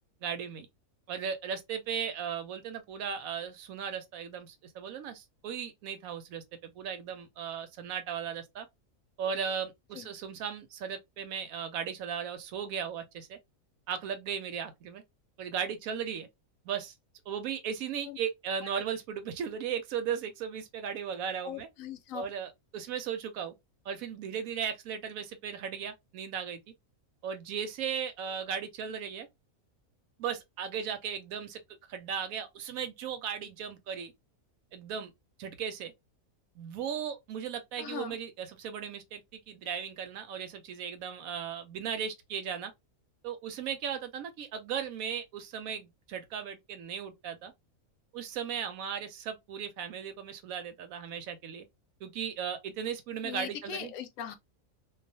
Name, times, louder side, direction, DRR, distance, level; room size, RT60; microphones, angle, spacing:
voice 1, 0.2-0.7 1.1-8.7 9.2-13.4 13.9-15.0 15.4-16.3 16.6-16.9 17.3-21.7 22.1-23.5 23.8-26.6 27.2-29.3 30.2-31.6 31.9-34.1 34.7-35.1 35.4-35.9 36.6-42.7 43.2-47.5 48.1-51.6 52.0-53.9, right 7 dB, 90° right, 1.1 m, -36 dB
voice 2, 21.4-22.3 37.8-38.2 53.2-54.4, left 9 dB, 75° left, 0.9 m, -40 dB
2.4 x 2.3 x 2.6 m
omnidirectional pair, 1.4 m